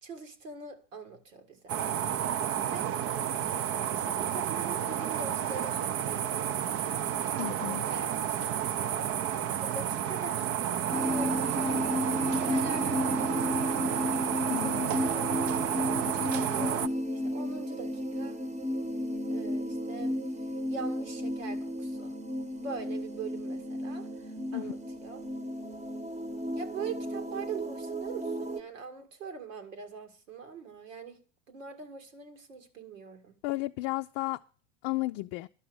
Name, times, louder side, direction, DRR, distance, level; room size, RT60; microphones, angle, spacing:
voice 1, 0.0-1.8 2.7-3.0 3.7-6.6 7.3-8.1 8.6-9.2 9.5-11.9 12.2-13.8 14.6-15.5 16.1-18.4 19.3-22.2 22.6-25.3 26.5-31.2 31.5-33.4, right 4 dB, 90° right, 2.1 m, -43 dB
sound 1, 1.7-16.9, right 10 dB, 40° right, 0.6 m, -31 dB
voice 2, 7.4-7.8 14.5-14.9 24.5-24.7 33.4-34.4 34.8-35.5, left 19 dB, 55° left, 0.5 m, -33 dB
sound 2, 10.9-28.6, equal, 20° right, 1.0 m, -33 dB
11.5 x 6.1 x 7.7 m
hypercardioid pair, 100°, 37 cm